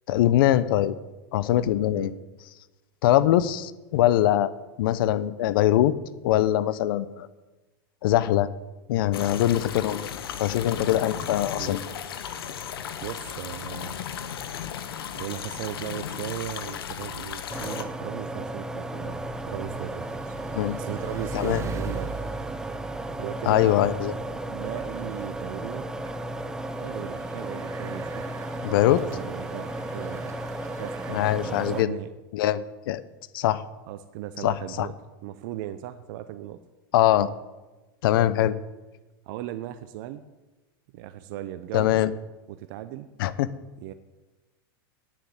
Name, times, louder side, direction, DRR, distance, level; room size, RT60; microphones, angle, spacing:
voice 1, 0.1-0.9 1.3-2.1 3.0-4.5 4.8-5.9 6.2-7.3 8.0-8.5 8.9-10.1 10.4-11.8 20.6-20.8 21.3-21.6 23.5-24.1 28.6-29.0 31.1-31.9 32.3-33.0 33.3-33.6 34.4-34.9 36.9-37.3 38.0-38.5 41.7-42.1 43.2-43.5, left 13 dB, 70° left, 16 dB, 0.7 m, -22 dB
sound 1, 9.1-17.8, left 8 dB, 85° left, 1.1 m, -35 dB
voice 2, 13.0-13.9 15.1-20.3 20.8-22.1 23.2-25.8 26.8-28.3 28.6-30.3 30.8-32.1 33.9-36.6 38.4-38.5 39.3-40.2 40.9-42.0 42.5-43.1 43.8-43.9, right 13 dB, 60° right, 10 dB, 0.7 m, -37 dB
Bicycle, 17.4-32.0, right 4 dB, 25° right, 1.0 m, -42 dB
sound 2, 17.5-31.8, right 1 dB, 5° right, 0.6 m, -34 dB
9.5 x 7.3 x 9.1 m, 1.1 s
supercardioid pair, 120°, 12 cm